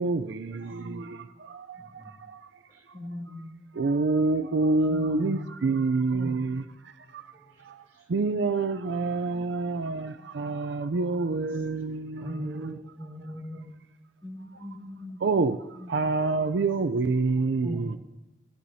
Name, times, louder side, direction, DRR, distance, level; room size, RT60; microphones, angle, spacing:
voice 1, 0.0-2.4 3.7-6.6 7.1-7.2 7.6-7.8 8.1-12.7 15.2-15.6 15.9-18.0, right 3 dB, 75° right, 0.5 m, -27 dB
voice 2, 0.7-1.1 2.9-3.5 14.2-15.2 15.8-16.0, left 1 dB, 25° left, 2.4 m, -41 dB
voice 3, 1.8-2.1 2.7-2.8 4.9-6.7 7.3-7.7 7.9-8.1 9.2-10.4 10.9-11.6 12.2-13.7 17.6-18.0, right 1 dB, 15° right, 5.7 m, -41 dB
16.0 x 15.0 x 2.7 m
head